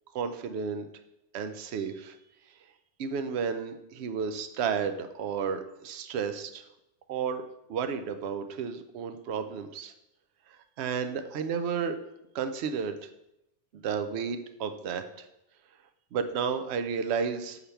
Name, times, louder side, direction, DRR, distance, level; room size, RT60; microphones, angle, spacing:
voice 1, 0.1-0.9 1.3-2.2 3.0-6.7 7.1-7.4 7.7-9.9 10.5-12.0 12.3-13.1 13.7-15.3 16.1-17.6, right 6 dB, 70° right, 9 dB, 0.8 m, -32 dB
6.9 x 3.3 x 5.7 m, 0.86 s
omnidirectional pair, 1.2 m